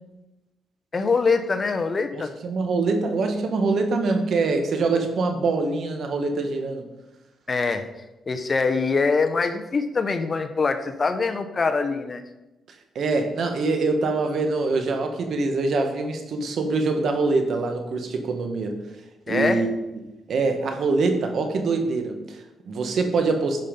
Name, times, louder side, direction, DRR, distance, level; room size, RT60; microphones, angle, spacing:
voice 1, 0.9-2.3 7.5-7.8 8.3-12.2 19.3-19.6, left 4 dB, 35° left, 8 dB, 1.0 m, -23 dB
voice 2, 2.1-6.9 13.0-18.8 19.3-19.8 20.3-23.6, right 3 dB, 65° right, 5 dB, 1.6 m, -24 dB
11.0 x 5.5 x 5.4 m, 1.0 s
cardioid pair, 80°, 0 cm